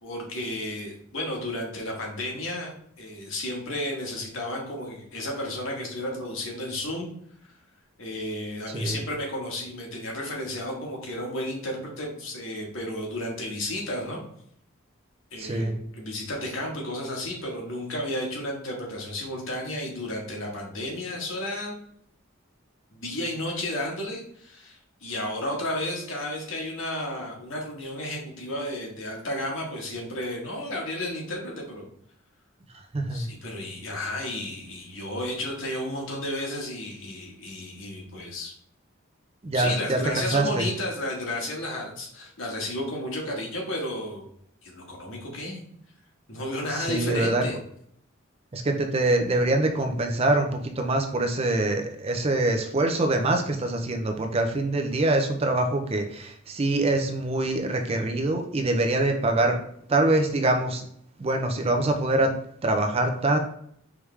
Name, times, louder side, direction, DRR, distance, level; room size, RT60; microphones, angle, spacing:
voice 1, 0.0-2.7 3.0-7.1 8.0-14.2 15.3-21.7 22.9-31.9 33.1-38.5 39.5-44.3 44.6-45.6 46.3-47.6, left 1 dB, 65° left, 0 dB, 1.4 m, -32 dB
voice 2, 15.4-15.7 32.9-33.3 39.4-40.6 46.7-47.4 48.5-59.6 59.9-60.9 61.2-62.3 62.6-63.4, right 2 dB, 30° right, 4 dB, 0.5 m, -24 dB
4.8 x 3.4 x 3.2 m, 0.68 s
head